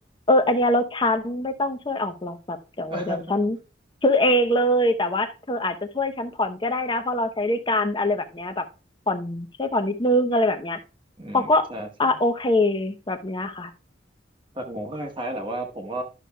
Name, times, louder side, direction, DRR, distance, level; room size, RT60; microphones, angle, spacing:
voice 1, 0.3-3.6 4.0-8.6 9.1-10.8 11.3-11.7 12.0-13.7, left 1 dB, 25° left, 8 dB, 0.7 m, -23 dB
voice 2, 11.2-11.9 14.5-16.0, right 1 dB, 25° right, 2 dB, 1.0 m, -32 dB
12.0 x 6.3 x 2.2 m, 0.32 s
head